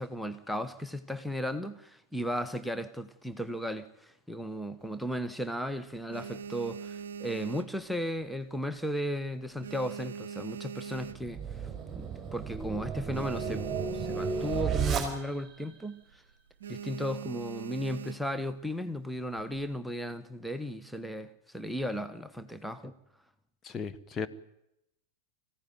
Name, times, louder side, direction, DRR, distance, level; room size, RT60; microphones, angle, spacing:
voice 1, 0.0-11.7 12.0-16.2 16.7-22.9, equal, ahead, 1.1 m, -35 dB
sound 1, 4.8-5.5 5.9-8.4 8.7-9.1 9.4-11.6 12.1-12.2 12.4-12.5 12.8-15.0 15.3-15.6 15.9-16.2 16.6-18.4 19.2-19.7, right 7 dB, 65° right, 0.8 m, -42 dB
sound 2, 11.1-15.6, right 6 dB, 15° right, 4.5 m, -33 dB
voice 2, 23.6-24.3, left 5 dB, 20° left, 1.2 m, -35 dB
24.5 x 16.0 x 9.5 m
figure-of-eight pair, 90°, 0 cm